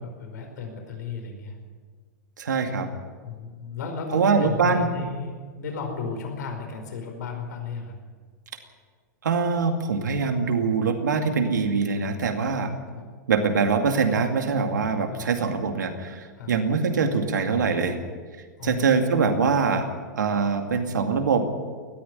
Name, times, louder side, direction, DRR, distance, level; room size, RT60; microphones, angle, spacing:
voice 1, 0.0-1.5 3.2-8.0 12.9-13.1 15.1-15.2 16.4-16.5 18.6-19.0, left 4 dB, 75° left, 4 dB, 4.8 m, -34 dB
voice 2, 2.4-2.9 4.1-4.9 9.2-12.7 13.3-18.0 18.6-19.9 20.2-21.5, right 5 dB, 85° right, 5 dB, 2.4 m, -23 dB
20.0 x 14.0 x 10.0 m, 1.5 s
hypercardioid pair, 115°, 10 cm